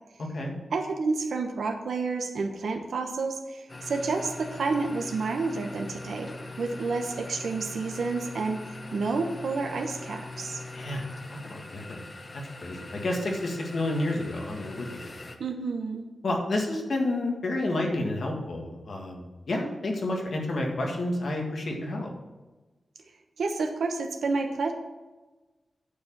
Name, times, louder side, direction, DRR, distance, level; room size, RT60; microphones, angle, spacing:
voice 1, 0.2-0.5 10.7-11.0 11.3-12.0 12.3-15.1 16.2-22.1, left 1 dB, 55° left, 1 dB, 1.7 m, -30 dB
voice 2, 0.7-6.3 6.6-10.6 15.4-16.0 23.4-24.7, right 4 dB, 90° right, 4 dB, 1.0 m, -30 dB
sound 1, 3.7-15.4, left 2 dB, 30° left, 0.8 m, -42 dB
9.2 x 4.9 x 7.4 m, 1.2 s
wide cardioid pair, 180°, 0 cm